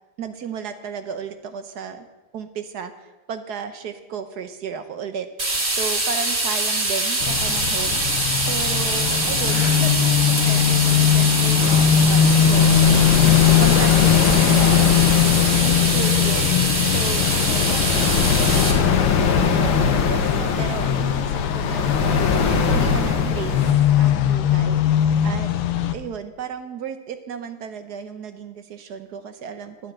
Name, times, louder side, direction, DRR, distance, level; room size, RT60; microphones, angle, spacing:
voice 1, 0.2-2.1 2.3-5.3 5.7-8.0 8.5-12.7 13.2-15.0 15.6-22.4 22.7-25.5 25.9-29.9, right 7 dB, 60° right, 9 dB, 1.2 m, -34 dB
sound 1, 5.4-18.7, right 2 dB, 30° right, 2.6 m, -24 dB
sound 2, 7.2-26.0, left 10 dB, 85° left, 1.8 m, -20 dB
sound 3, 11.6-23.7, left 5 dB, 60° left, 1.9 m, -23 dB
12.0 x 7.8 x 8.9 m, 1.2 s
omnidirectional pair, 2.4 m